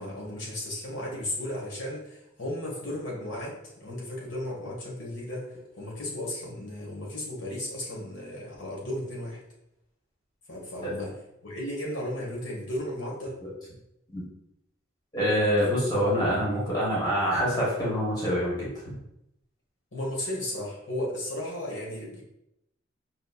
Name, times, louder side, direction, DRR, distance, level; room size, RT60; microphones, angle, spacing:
voice 1, 0.0-9.4 10.5-11.2 11.4-13.4 16.4-16.9 19.9-22.2, left 1 dB, 75° left, -3 dB, 1.2 m, -35 dB
voice 2, 15.1-19.0, equal, 20° left, -7 dB, 1.2 m, -26 dB
5.3 x 3.0 x 2.3 m, 0.84 s
head